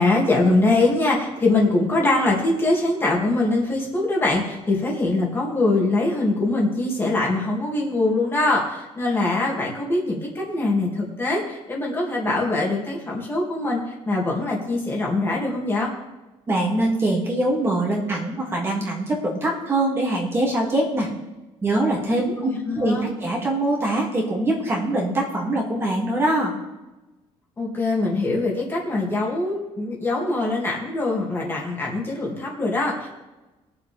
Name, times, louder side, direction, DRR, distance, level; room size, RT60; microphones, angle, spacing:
voice 1, 0.0-15.9 22.2-23.1 27.6-33.1, left 2 dB, 20° left, -3 dB, 2.4 m, -23 dB
voice 2, 16.5-21.1 21.6-26.5, right 1 dB, 20° right, -2 dB, 2.4 m, -23 dB
21.0 x 7.2 x 3.5 m, 1.1 s
cardioid pair, 165°, 12 cm